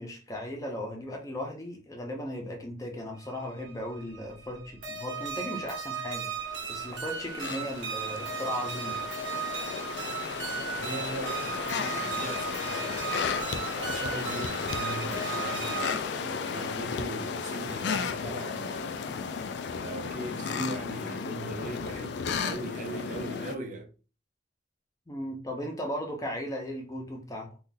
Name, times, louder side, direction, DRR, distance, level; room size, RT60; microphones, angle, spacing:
voice 1, 0.0-6.3 6.7-9.1 25.1-27.5, equal, 15° left, 0.7 m, -36 dB
sound 1, 3.2-15.9, right 6 dB, 90° right, 1.1 m, -36 dB
sound 2, 6.2-23.5, left 6 dB, 60° left, 0.3 m, -34 dB
voice 2, 10.7-13.2 13.7-19.0 19.7-23.9, right 2 dB, 40° right, 0.5 m, -39 dB
2.6 x 2.5 x 3.8 m
head